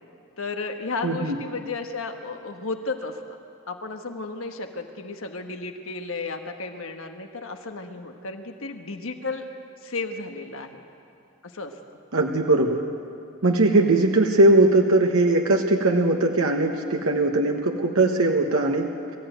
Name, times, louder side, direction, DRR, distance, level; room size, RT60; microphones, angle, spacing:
voice 1, 0.4-3.4 3.7-9.5 9.8-10.8 11.4-11.8, left 3 dB, 70° left, 5 dB, 1.3 m, -33 dB
voice 2, 1.0-1.3 12.1-12.8 13.4-18.9, right 2 dB, 85° right, 2 dB, 1.3 m, -20 dB
22.5 x 14.5 x 9.3 m, 2.6 s
head